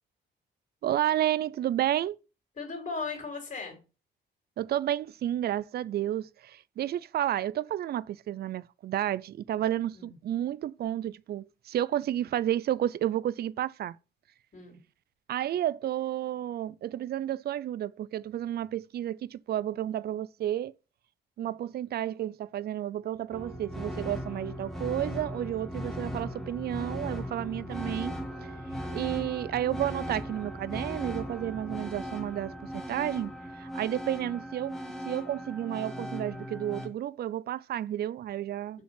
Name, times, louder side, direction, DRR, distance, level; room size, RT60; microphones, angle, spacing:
voice 1, 0.8-2.2 4.6-14.0 15.3-20.7 21.4-28.1 28.4-28.5 28.9-34.8 35.1-38.8, right 12 dB, 55° right, 0.4 m, -31 dB
voice 2, 2.6-3.8 9.9-10.1 14.5-14.8 27.7-28.1 34.2-34.3, left 4 dB, 45° left, 3.7 m, -38 dB
sound 1, 23.3-36.9, equal, ahead, 2.0 m, -38 dB
6.6 x 5.3 x 5.7 m
cardioid pair, 120°, 19 cm